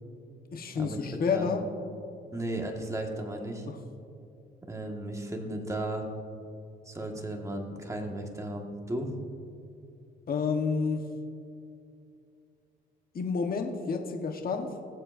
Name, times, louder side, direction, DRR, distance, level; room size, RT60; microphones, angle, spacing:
voice 1, 0.5-1.7 3.7-3.8 10.3-11.0 13.1-14.7, left 5 dB, 50° left, 4 dB, 1.1 m, -29 dB
voice 2, 2.3-3.7 4.7-6.1 6.9-9.1, right 1 dB, 15° right, 2 dB, 1.6 m, -35 dB
20.5 x 7.6 x 2.6 m, 2.5 s
cardioid pair, 90°, 20 cm